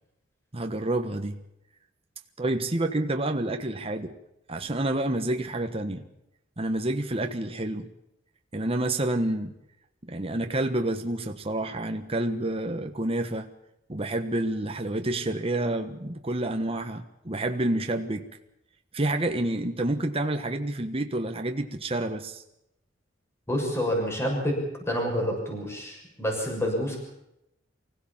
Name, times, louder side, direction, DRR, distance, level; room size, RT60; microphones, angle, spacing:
voice 1, 0.5-1.4 2.4-4.1 4.5-6.1 6.6-7.9 8.5-9.5 10.0-13.5 13.9-18.3 18.9-22.4, right 1 dB, 30° right, 5 dB, 1.4 m, -28 dB
voice 2, 23.5-24.6 24.9-27.0, equal, 15° left, 1 dB, 6.6 m, -28 dB
25.0 x 16.5 x 7.3 m, 0.85 s
head